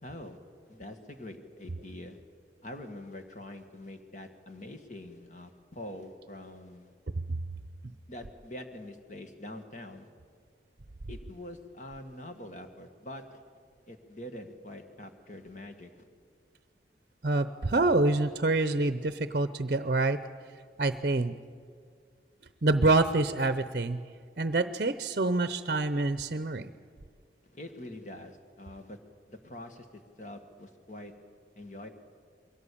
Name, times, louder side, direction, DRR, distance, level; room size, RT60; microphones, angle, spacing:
voice 1, 0.0-0.4 0.7-2.2 2.6-6.9 8.1-10.1 11.1-13.4 13.9-16.0 27.5-29.0 29.3-31.1 31.6-31.9, left 1 dB, 45° left, 6 dB, 1.8 m, -44 dB
voice 2, 17.2-20.2 20.8-21.3 22.6-24.0 24.4-26.7, right 2 dB, 50° right, 12 dB, 0.7 m, -26 dB
23.0 x 17.0 x 8.6 m, 2.1 s
head